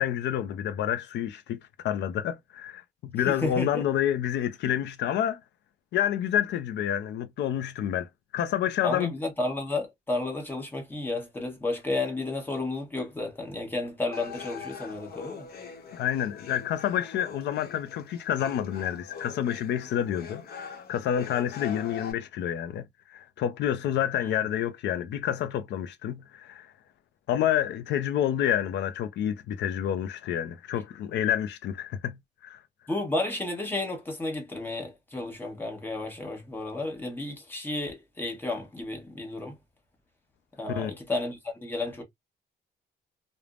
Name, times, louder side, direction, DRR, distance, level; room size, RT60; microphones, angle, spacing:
voice 1, 0.0-5.4 5.9-9.1 15.9-26.7 27.3-32.6 40.8-41.0, left 10 dB, 80° left, 0.4 m, -29 dB
voice 2, 3.3-3.8 8.8-15.5 32.9-39.6 40.6-42.0, left 2 dB, 10° left, 1.0 m, -32 dB
sound 1, 14.1-22.1, left 6 dB, 60° left, 0.8 m, -43 dB
3.2 x 2.0 x 2.3 m
cardioid pair, 140°, 18 cm